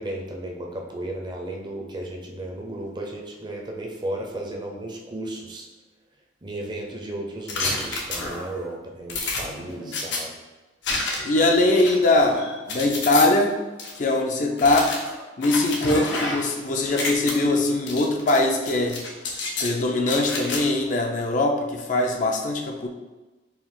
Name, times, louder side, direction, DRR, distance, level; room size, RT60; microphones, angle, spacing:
voice 1, 0.0-5.7 6.4-10.4, right 1 dB, 25° right, 1 dB, 0.5 m, -34 dB
sound 1, 7.5-8.6 9.1-10.2 10.8-11.4 11.8-13.3 13.8-13.9 14.6-16.6 16.8-17.3 17.9-18.4 18.7-19.7 20.1-20.6, left 3 dB, 75° left, 0.8 m, -29 dB
voice 2, 11.2-13.6 13.9-15.0 15.4-19.0 19.6-22.9, left 2 dB, 45° left, 2 dB, 0.5 m, -21 dB
4.5 x 2.4 x 3.7 m, 1.2 s
head